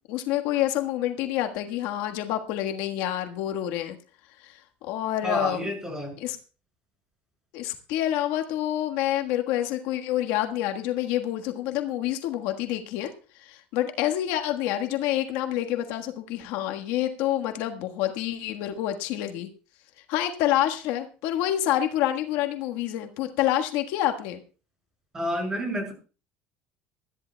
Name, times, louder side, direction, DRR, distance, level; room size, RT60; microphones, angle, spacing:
voice 1, 0.1-4.0 4.4-5.7 6.2-6.4 7.5-13.1 13.4-19.5 20.1-24.4, left 12 dB, 75° left, 5 dB, 1.4 m, -27 dB
voice 2, 5.2-6.1 25.1-25.9, equal, 15° right, 2 dB, 6.5 m, -29 dB
21.0 x 13.5 x 2.3 m, 0.35 s
cardioid pair, 145°, 4 cm